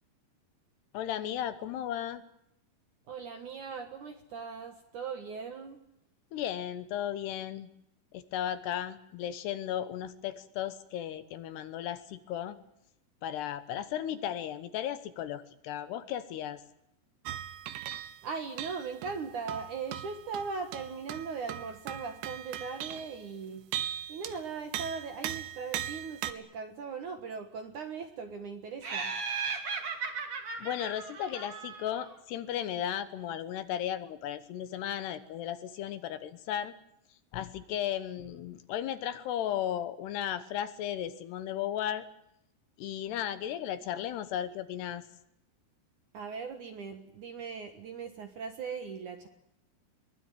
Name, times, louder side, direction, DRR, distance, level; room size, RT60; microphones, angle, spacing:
voice 1, 0.9-2.2 6.3-7.7 8.1-12.6 13.2-16.6 30.6-36.7 37.3-42.1 42.8-45.0, left 10 dB, 75° left, 12 dB, 2.9 m, -35 dB
voice 2, 3.1-5.8 18.2-23.7 24.1-29.1 46.1-49.3, right 5 dB, 60° right, 6 dB, 2.2 m, -39 dB
sound 1, 17.3-18.3 18.6-23.3 23.7-24.5 24.7-26.3, right 11 dB, 80° right, 3.5 m, -39 dB
Laughter, 28.8-32.1, right 5 dB, 35° right, 2.9 m, -36 dB
23.0 x 20.0 x 9.1 m, 0.78 s
omnidirectional pair, 5.3 m